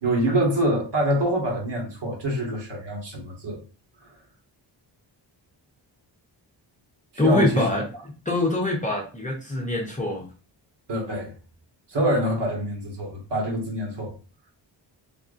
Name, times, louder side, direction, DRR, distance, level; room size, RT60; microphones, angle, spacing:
voice 1, 0.0-3.6 7.2-7.7 10.9-11.3 11.9-14.1, right 1 dB, 60° right, 1.6 m, -25 dB
voice 2, 7.2-7.9 8.3-10.3, left 2 dB, 15° left, 0.7 m, -24 dB
3.5 x 2.9 x 2.4 m
wide cardioid pair, 135°, 46 cm